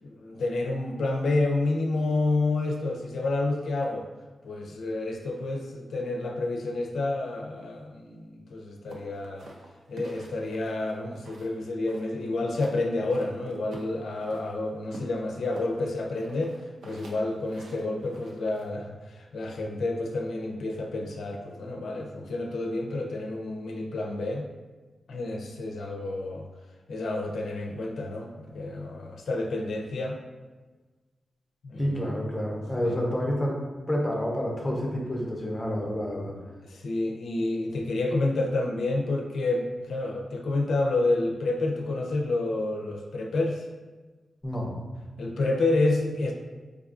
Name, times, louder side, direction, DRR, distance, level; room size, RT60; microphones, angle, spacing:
voice 1, 0.0-4.1 4.4-9.5 9.9-16.5 16.8-24.5 25.1-26.5 26.9-30.2 31.6-32.1 32.8-33.0 36.7-43.7 45.2-46.3, left 2 dB, 85° left, 1 dB, 0.4 m, -29 dB
sound 1, 8.9-11.6 11.9-12.8 13.1-14.5 14.9-18.7, right 2 dB, 85° right, 0.5 m, -47 dB
voice 2, 31.8-33.6 33.9-36.3 44.4-44.7, equal, 10° left, -2 dB, 0.5 m, -29 dB
4.6 x 2.3 x 2.4 m, 1.3 s
wide cardioid pair, 180°, 0 cm